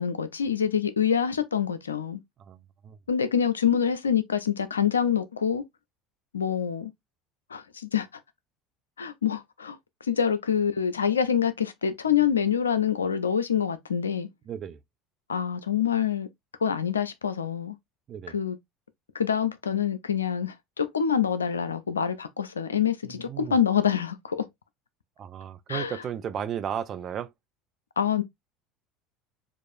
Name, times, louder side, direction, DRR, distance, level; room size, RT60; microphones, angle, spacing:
voice 1, 0.0-2.2 3.1-5.6 6.3-6.9 7.5-8.1 9.0-9.8 10.1-14.3 15.3-16.3 16.6-17.8 18.3-18.6 19.1-24.5 25.7-25.9 28.0-28.2, left 8 dB, 80° left, 0.4 m, -26 dB
voice 2, 2.5-3.0 14.5-14.8 18.1-18.4 23.3-23.6 25.2-27.3, right 9 dB, 40° right, 0.5 m, -34 dB
4.7 x 2.5 x 2.5 m
figure-of-eight pair, 70°, 0 cm